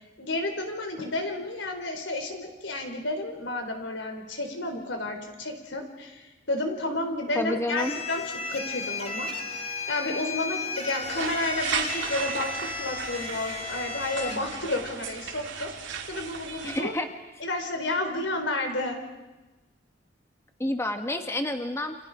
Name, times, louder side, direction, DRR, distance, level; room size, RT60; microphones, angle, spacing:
voice 1, 0.2-9.3 9.9-15.7 16.1-16.9 17.4-19.0, left 2 dB, 90° left, 4 dB, 4.2 m, -31 dB
voice 2, 7.3-8.0 16.6-17.1 20.6-21.9, left 1 dB, 15° left, 6 dB, 1.3 m, -29 dB
sound 1, 7.8-14.4, left 4 dB, 35° left, 2.2 m, -34 dB
sound 2, 11.0-16.8, right 6 dB, 80° right, 2.5 m, -35 dB
29.5 x 27.5 x 4.9 m, 1.1 s
head